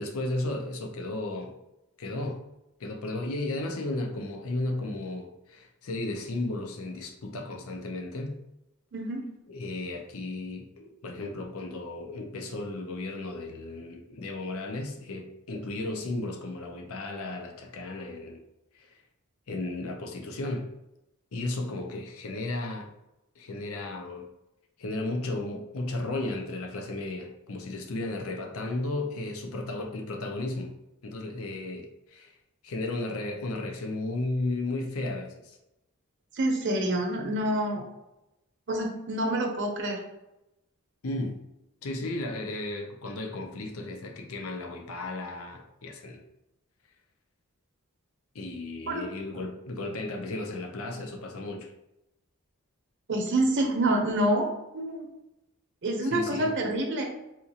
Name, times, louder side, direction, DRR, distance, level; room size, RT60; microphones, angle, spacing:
voice 1, 0.0-1.6 2.0-2.4 2.8-8.4 9.5-18.4 18.7-19.0 19.5-20.7 21.3-22.9 23.4-24.3 24.8-30.7 31.0-32.3 32.6-35.6 41.0-41.4 41.8-46.2 48.3-51.7 56.0-56.5, left 2 dB, 75° left, 2 dB, 0.6 m, -34 dB
voice 2, 8.9-9.3 36.3-37.8 38.7-40.0 48.9-49.0 53.1-55.1 55.8-57.0, right 1 dB, 55° right, 1 dB, 0.7 m, -27 dB
4.2 x 2.4 x 2.7 m, 0.92 s
head